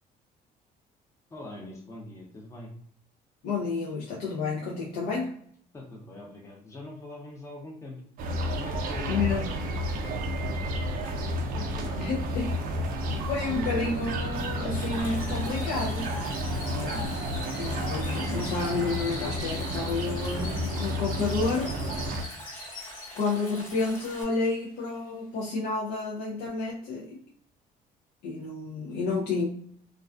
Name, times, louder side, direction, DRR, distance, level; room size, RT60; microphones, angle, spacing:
voice 1, 1.3-2.7 5.7-8.0 8.6-9.6 9.9-12.0, left 2 dB, 15° left, -2 dB, 0.5 m, -43 dB
voice 2, 3.4-5.3 9.1-9.5 12.0-12.5 13.1-16.3 16.7-17.1 17.6-21.7 23.1-27.2 28.2-29.5, left 3 dB, 75° left, -4 dB, 0.5 m, -30 dB
sound 1, 8.2-22.2, equal, 55° right, 0.4 m, -31 dB
sound 2, 11.7-11.8 11.9-23.4 23.8-24.1 24.5-24.6, left 1 dB, 60° left, 1.0 m, -45 dB
Stream, 14.7-24.2, equal, 40° left, 1.1 m, -44 dB
2.3 x 2.3 x 2.3 m, 0.62 s
cardioid pair, 110°, 17 cm